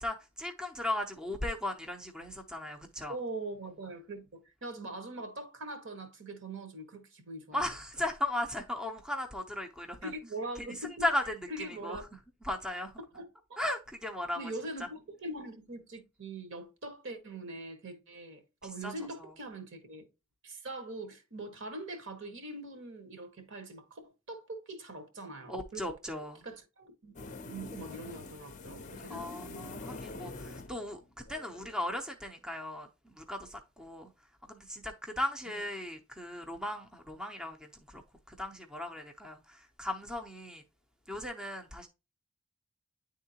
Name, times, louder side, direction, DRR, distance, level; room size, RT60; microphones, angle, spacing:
voice 1, 0.0-3.2 7.5-10.1 11.0-11.3 11.7-12.0 12.4-12.9 13.6-14.4 18.8-18.9 25.5-26.4 29.1-34.1 34.5-38.0 38.3-40.6 41.1-41.9, left 1 dB, 5° right, 0.6 m, -37 dB
voice 2, 3.1-7.7 10.0-11.1 11.5-12.0 13.1-13.6 14.3-20.0 20.4-26.0 26.4-27.2 27.5-29.3, right 2 dB, 60° right, 1.4 m, -42 dB
sound 1, 27.2-31.8, left 3 dB, 35° left, 0.6 m, -45 dB
9.8 x 3.7 x 2.8 m
head